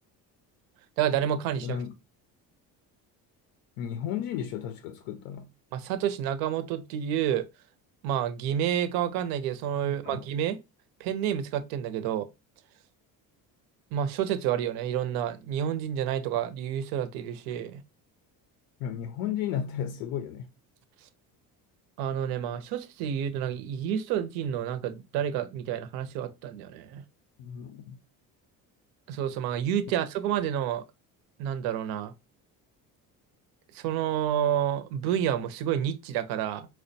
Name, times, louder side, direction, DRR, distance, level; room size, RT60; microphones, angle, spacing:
voice 1, 1.0-1.8 5.7-7.5 8.0-10.6 11.0-12.3 13.9-17.8 22.0-27.0 29.1-30.8 31.4-32.1 33.7-36.7, right 10 dB, 85° right, 0.6 m, -29 dB
voice 2, 1.6-1.9 3.8-5.5 9.8-10.2 18.8-20.5 27.4-28.0, left 9 dB, 90° left, 0.6 m, -34 dB
4.5 x 2.1 x 2.6 m
cardioid pair, 150°, 35 cm